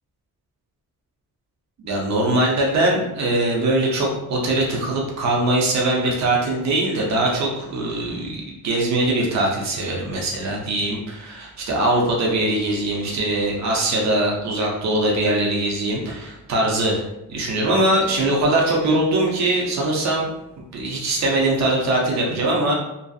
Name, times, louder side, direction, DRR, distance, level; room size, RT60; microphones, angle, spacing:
voice 1, 1.8-17.0 17.3-20.3 20.6-22.7, right 1 dB, 55° right, -2 dB, 0.6 m, -21 dB
2.6 x 2.3 x 2.3 m, 0.89 s
wide cardioid pair, 165°, 33 cm